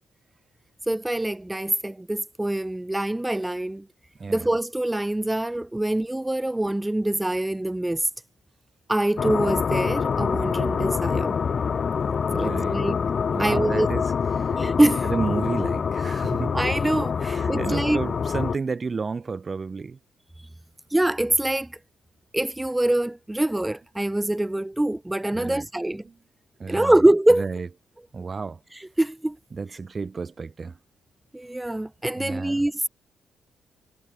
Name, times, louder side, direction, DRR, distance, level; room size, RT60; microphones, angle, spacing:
voice 1, 0.9-3.9 4.3-8.1 8.9-11.4 12.3-12.9 13.4-13.9 14.5-15.1 16.5-18.0 20.9-21.7 22.3-26.0 26.7-27.5 28.8-29.4 31.3-32.9, right 1 dB, 10° right, 0.5 m, -24 dB
sound 1, 9.2-18.6, left 6 dB, 45° left, 1.8 m, -25 dB
voice 2, 12.3-12.8 13.3-14.0 14.4-14.6 15.0-16.6 17.2-20.0 25.3-25.7 26.0-26.1 26.6-27.0 27.4-27.7 28.1-28.6 29.5-30.8 32.2-32.7, right 4 dB, 35° right, 1.1 m, -31 dB
cardioid pair, 90°, 0 cm